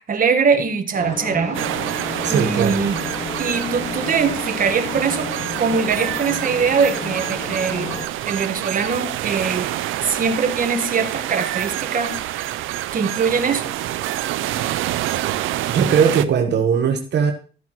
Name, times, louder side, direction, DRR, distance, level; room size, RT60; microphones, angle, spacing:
voice 1, 0.0-1.6 1.9-3.0 3.4-5.3 5.6-8.0 8.2-9.7 10.0-12.6 12.9-13.6, right 5 dB, 45° right, 6 dB, 1.5 m, -22 dB
sound 1, 0.9-8.1, left 3 dB, 35° left, 2.7 m, -32 dB
sound 2, 1.5-16.2, right 14 dB, 85° right, 0.6 m, -27 dB
voice 2, 2.2-2.8 15.7-17.3, right 7 dB, 60° right, 4 dB, 1.2 m, -19 dB
13.5 x 8.2 x 3.1 m, 0.38 s
cardioid pair, 90°, 20 cm